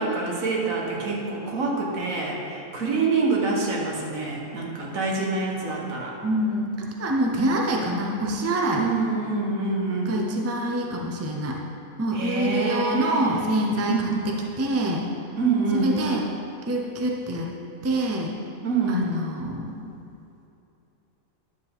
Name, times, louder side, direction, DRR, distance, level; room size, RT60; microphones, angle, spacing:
voice 1, 0.0-6.1 8.8-10.2 12.1-13.4 13.9-14.1 15.4-16.0 18.6-19.1, right 4 dB, 80° right, -1 dB, 1.6 m, -26 dB
voice 2, 6.2-6.7 7.0-8.9 10.1-11.6 12.0-15.0 15.8-16.2 16.7-17.5 17.8-18.3 18.9-19.9, right 1 dB, 15° right, -1 dB, 0.5 m, -25 dB
10.0 x 7.1 x 3.5 m, 2.8 s
omnidirectional pair, 1.4 m